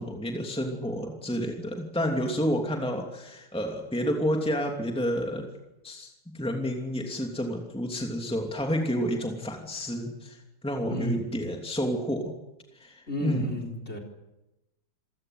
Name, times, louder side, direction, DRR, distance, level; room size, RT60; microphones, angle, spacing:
voice 1, 0.0-5.5 5.8-10.4 10.6-12.3 12.8-13.6, equal, 5° left, 2 dB, 2.8 m, -30 dB
voice 2, 10.9-11.3 13.1-14.0, equal, 35° left, 5 dB, 4.5 m, -32 dB
27.5 x 17.0 x 9.5 m, 0.98 s
omnidirectional pair, 1.9 m